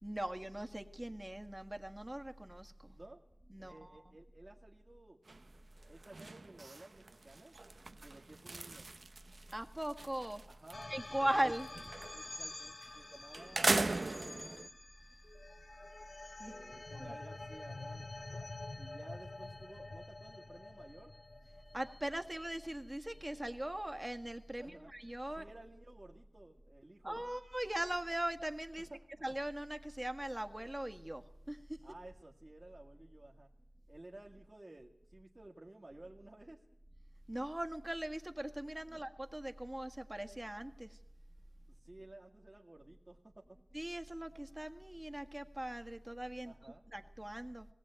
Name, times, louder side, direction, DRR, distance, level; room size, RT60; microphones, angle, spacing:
voice 1, 0.0-3.0 3.5-4.0 9.5-10.4 10.9-11.7 16.4-16.5 16.9-17.1 21.7-25.4 27.0-28.9 29.2-31.8 37.3-41.0 43.7-46.5 46.9-47.7, right 1 dB, 20° right, 6 dB, 1.7 m, -40 dB
voice 2, 3.6-5.2 5.9-7.6 8.0-8.9 10.5-11.4 12.1-14.6 16.4-18.5 18.8-21.1 24.6-24.9 25.3-27.2 28.8-29.1 31.8-33.5 33.9-36.6 38.9-39.1 41.7-43.4 46.4-46.8, right 2 dB, 40° right, -1 dB, 2.0 m, -55 dB
sound 1, 5.3-5.5 5.8-10.8 11.2-12.3 12.8-12.9 13.3-14.7, right 3 dB, 70° right, 0.9 m, -38 dB
sound 2, 10.7-23.2, left 2 dB, 60° left, 0.8 m, -48 dB
19.0 x 18.5 x 9.0 m, 0.83 s
wide cardioid pair, 60°, 0 cm